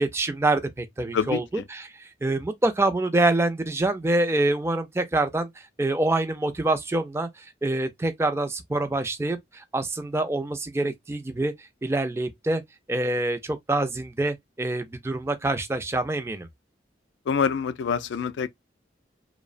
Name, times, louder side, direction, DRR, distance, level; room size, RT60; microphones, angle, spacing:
voice 1, 0.0-5.5 5.8-12.6 12.9-16.5, right 2 dB, 15° right, 0.3 m, -26 dB
voice 2, 17.3-18.5, left 6 dB, 80° left, 0.3 m, -25 dB
2.7 x 2.0 x 2.4 m
head